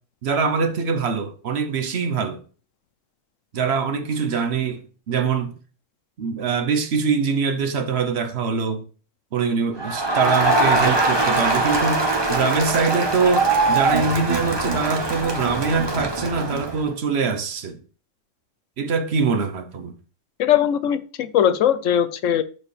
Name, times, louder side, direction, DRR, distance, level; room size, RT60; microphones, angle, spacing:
voice 1, 0.2-2.4 3.5-5.5 6.2-8.8 9.3-17.8 18.8-19.9, right 5 dB, 60° right, 1.0 m, -23 dB
Crowd, 9.8-16.8, right 2 dB, 20° right, 1.0 m, -22 dB
voice 2, 20.4-22.4, left 10 dB, 80° left, 1.0 m, -20 dB
12.0 x 4.6 x 3.2 m
omnidirectional pair, 1.3 m